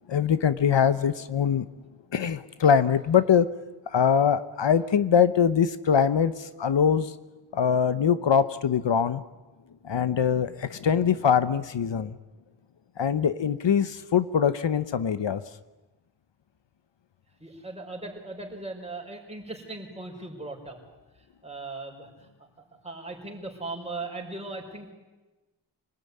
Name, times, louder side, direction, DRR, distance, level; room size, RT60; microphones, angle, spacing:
voice 1, 0.1-1.7 2.1-3.5 3.9-7.1 7.5-9.2 9.8-12.2 13.0-15.4, left 7 dB, 75° left, 12 dB, 1.0 m, -23 dB
voice 2, 17.4-20.8 21.2-24.9, right 2 dB, 15° right, 1 dB, 5.1 m, -39 dB
26.5 x 19.0 x 9.7 m, 1.1 s
wide cardioid pair, 130°, 44 cm